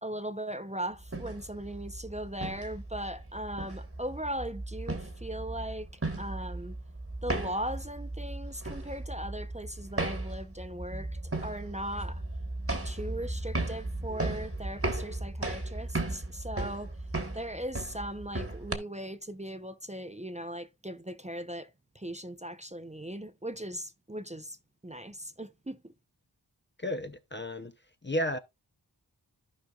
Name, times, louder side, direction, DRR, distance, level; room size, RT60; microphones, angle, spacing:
voice 1, 0.0-5.9 6.2-6.8 7.2-12.2 12.8-17.0 17.3-24.6 24.8-25.9, right 1 dB, 15° right, 0.7 m, -38 dB
sound 1, 1.0-18.8, right 2 dB, 30° right, 1.5 m, -36 dB
voice 2, 26.8-27.7 28.0-28.4, left 1 dB, 25° left, 0.7 m, -32 dB
14.5 x 5.1 x 2.4 m
wide cardioid pair, 45°, 44 cm